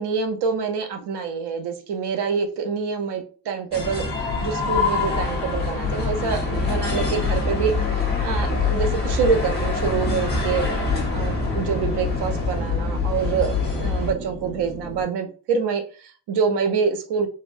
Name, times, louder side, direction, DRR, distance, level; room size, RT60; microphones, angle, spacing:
voice 1, 0.0-4.0 4.4-10.6 11.1-17.3, right 6 dB, 85° right, 6 dB, 0.8 m, -26 dB
sound 1, 3.7-14.1, left 4 dB, 25° left, 0.9 m, -24 dB
sound 2, 9.9-15.0, right 1 dB, 30° right, 0.8 m, -37 dB
3.9 x 2.0 x 2.5 m, 0.39 s
cardioid pair, 165°, 40 cm